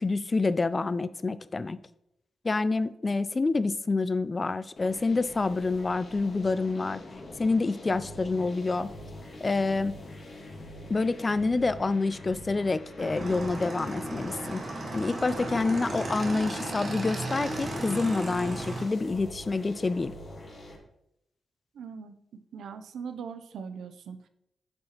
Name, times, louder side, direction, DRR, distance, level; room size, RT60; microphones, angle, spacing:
voice 1, 0.0-1.8 2.4-7.0 7.4-8.9 9.4-9.9 10.9-14.6 14.9-20.1, left 3 dB, 35° left, 15 dB, 0.3 m, -27 dB
sound 1, 4.8-20.8, left 1 dB, 50° left, 1.5 m, -45 dB
Motorcycle / Engine, 13.0-18.8, right 2 dB, 50° right, 1.5 m, -35 dB
voice 2, 21.7-22.1 22.5-24.3, right 6 dB, 85° right, 10 dB, 0.5 m, -40 dB
8.5 x 4.4 x 2.9 m, 0.80 s
cardioid pair, 80°, 0 cm